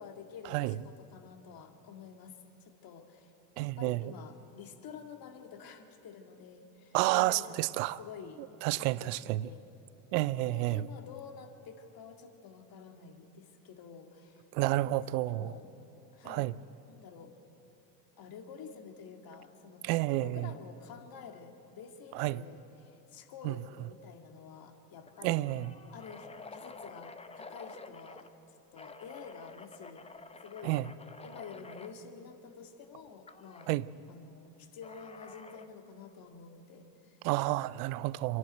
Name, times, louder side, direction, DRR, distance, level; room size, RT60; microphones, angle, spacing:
voice 1, 0.0-3.3 3.6-8.5 8.7-9.6 10.2-14.4 14.8-15.7 16.1-16.5 16.8-17.3 18.2-19.8 20.1-25.5 25.9-30.1 30.4-30.9 31.2-33.7 34.1-37.2, left 6 dB, 45° left, 2.2 m, -49 dB
voice 2, 3.6-4.0 6.9-8.0 8.6-9.5 10.1-10.9 14.5-15.5 16.3-16.5 19.8-20.5 22.1-22.4 23.4-23.5 25.2-25.7 30.6-30.8 33.7-33.9 37.2-38.4, right 18 dB, 65° right, 0.7 m, -30 dB
sound 1, 23.8-24.1 24.4-24.5 25.0-28.3 28.7-31.9 33.3-33.7 34.8-35.8, left 3 dB, 10° left, 0.8 m, -50 dB
26.5 x 11.0 x 9.1 m
hypercardioid pair, 90°, 49 cm